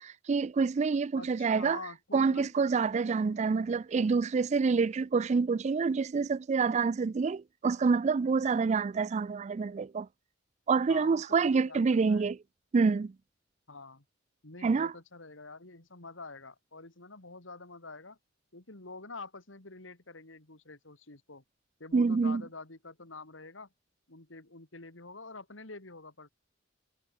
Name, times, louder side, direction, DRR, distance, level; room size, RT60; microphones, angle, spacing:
voice 1, 0.0-1.8 2.1-10.1 10.7-12.4 12.7-13.1 14.6-14.9 21.9-22.4, right 4 dB, 35° right, 0.3 m, -27 dB
voice 2, 1.1-2.5 3.2-3.3 10.9-12.3 13.7-14.0 14.4-18.2 18.5-21.4 21.8-23.7 24.1-26.3, left 3 dB, 75° left, 3.0 m, -47 dB
head